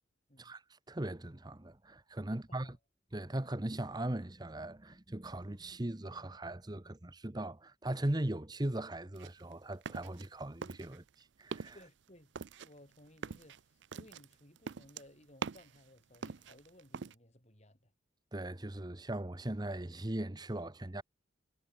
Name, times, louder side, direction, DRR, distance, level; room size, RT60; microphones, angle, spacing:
voice 1, 0.4-2.8 3.1-11.8 18.3-21.0, right 1 dB, 20° right, 1.0 m, -39 dB
voice 2, 2.3-2.8 11.7-12.4 12.6-17.9, left 1 dB, 35° left, 5.6 m, -60 dB
sound 1, 9.1-10.3 10.6-11.1 11.4-11.8 12.4-15.8 16.1-17.1, right 5 dB, 70° right, 0.5 m, -43 dB
head